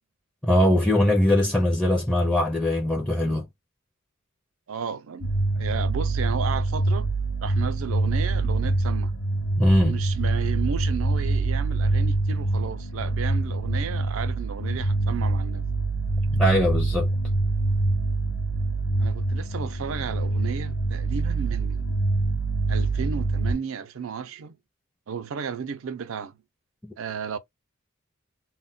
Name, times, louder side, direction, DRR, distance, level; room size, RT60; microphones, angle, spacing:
voice 1, 0.4-3.5 9.6-10.0 16.3-17.1 26.8-26.9, left 1 dB, 5° left, 0.4 m, -21 dB
voice 2, 4.7-7.1 7.4-9.1 9.8-15.7 19.0-22.0 22.7-24.6 25.1-26.4 27.0-27.4, right 6 dB, 85° right, 0.5 m, -34 dB
sound 1, 5.2-23.5, right 2 dB, 65° left, 0.5 m, -25 dB
2.2 x 2.1 x 3.7 m
head